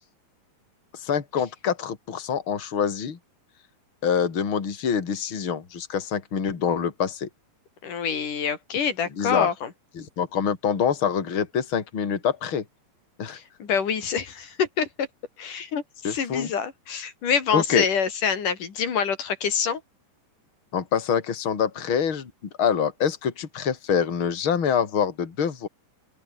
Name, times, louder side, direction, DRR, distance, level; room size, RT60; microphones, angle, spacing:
voice 1, 0.9-3.2 4.0-7.3 9.2-9.5 10.0-12.6 13.2-13.4 16.0-16.5 17.5-17.9 20.7-22.3 22.6-25.7, left 7 dB, 40° left, 3.4 m, -25 dB
voice 2, 7.8-9.7 13.3-15.1 15.4-19.8, left 7 dB, 65° left, 4.7 m, -26 dB
open air
omnidirectional pair, 3.9 m